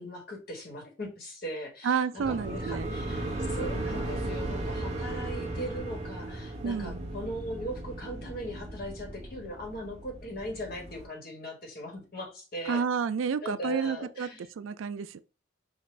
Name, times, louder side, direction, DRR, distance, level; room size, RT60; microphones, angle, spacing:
voice 1, 0.0-12.8 13.4-14.5, equal, 50° left, 1.5 m, -39 dB
voice 2, 1.8-2.9 6.6-7.1 12.7-14.3 14.6-15.2, right 6 dB, 80° right, 0.4 m, -30 dB
sound 1, 2.2-11.0, right 1 dB, 30° right, 1.2 m, -36 dB
5.6 x 2.5 x 3.2 m
head